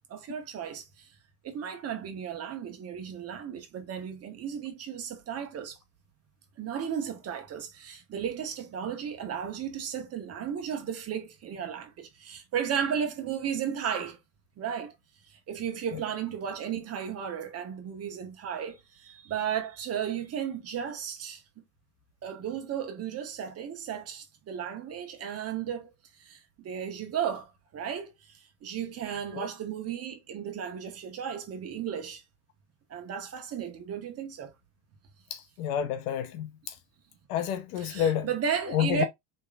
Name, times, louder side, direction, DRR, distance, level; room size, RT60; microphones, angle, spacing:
voice 1, 0.1-1.1 1.4-5.8 6.6-14.2 14.6-14.9 15.5-21.4 22.2-25.9 26.2-28.1 28.6-32.2 32.9-34.5 37.8-39.1, right 8 dB, 30° right, 1.4 m, -34 dB
voice 2, 35.3-36.7 37.3-38.3 38.7-39.0, left 9 dB, 65° left, 1.0 m, -29 dB
5.3 x 3.5 x 2.5 m
supercardioid pair, 135°, 49 cm